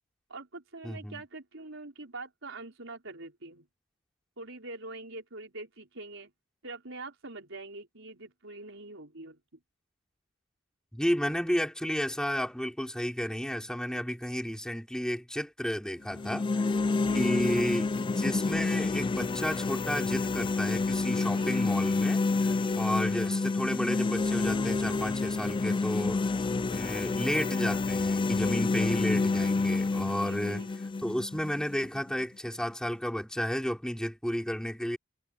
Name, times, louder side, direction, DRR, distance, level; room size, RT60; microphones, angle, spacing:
voice 1, 0.3-3.7 4.4-6.3 6.6-9.6 17.1-17.3 21.3-21.6 22.6-22.9 26.4-26.8 30.2-30.7, right 2 dB, 70° right, 5.3 m, -44 dB
voice 2, 0.8-1.2 10.9-16.7 17.1-26.3 26.7-30.7 31.0-35.0, equal, 5° left, 4.1 m, -32 dB
sound 1, 16.1-32.1, left 3 dB, 25° left, 0.3 m, -29 dB
head